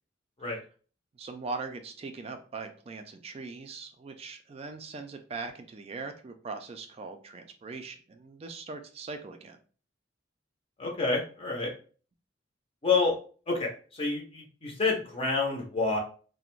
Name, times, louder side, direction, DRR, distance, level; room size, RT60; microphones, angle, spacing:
voice 1, 1.1-9.6, right 4 dB, 35° right, 6 dB, 0.3 m, -40 dB
voice 2, 10.8-11.7 12.8-13.2 13.5-16.0, left 3 dB, 30° left, 0 dB, 0.5 m, -28 dB
2.4 x 2.1 x 3.0 m, 0.40 s
head